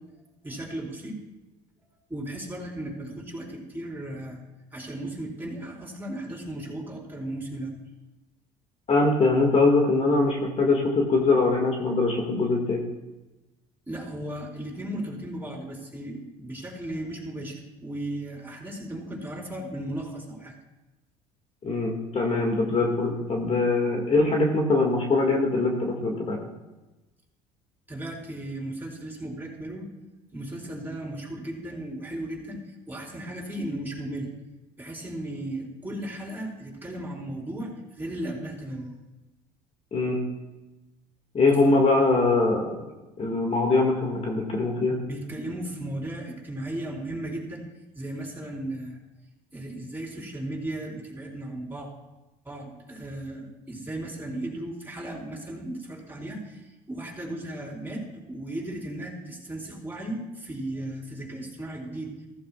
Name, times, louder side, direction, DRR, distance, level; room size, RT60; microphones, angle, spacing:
voice 1, 0.4-1.2 2.1-4.4 4.7-7.8 13.9-20.5 27.9-29.9 30.3-32.6 32.9-34.3 34.8-38.9 41.6-41.8 45.0-47.6 47.9-49.0 49.5-51.9 52.4-62.1, right 1 dB, 10° right, -3 dB, 4.6 m, -36 dB
voice 2, 8.9-12.8 21.6-26.4 39.9-40.2 41.3-42.7 43.2-45.0, left 3 dB, 35° left, 0 dB, 2.1 m, -22 dB
15.5 x 14.0 x 2.4 m, 1.1 s
hypercardioid pair, 75°, 18 cm